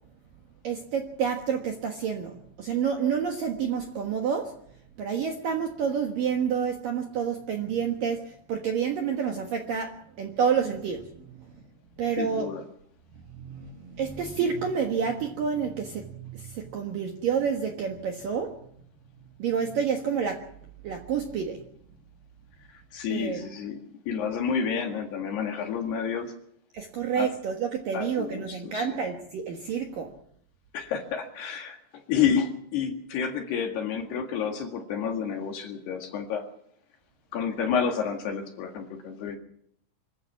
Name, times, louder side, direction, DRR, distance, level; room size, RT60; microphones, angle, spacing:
voice 1, 0.6-4.5 5.0-11.6 12.0-12.5 13.3-18.6 19.4-20.5 20.8-21.6 23.1-23.4 26.7-30.1, right 7 dB, 65° right, 3 dB, 2.3 m, -29 dB
voice 2, 12.2-12.6 22.7-26.3 27.2-27.3 27.9-29.0 30.7-31.8 32.1-36.4 37.3-39.4, left 7 dB, 60° left, 3 dB, 3.5 m, -30 dB
25.0 x 15.0 x 7.2 m, 0.67 s
omnidirectional pair, 6.0 m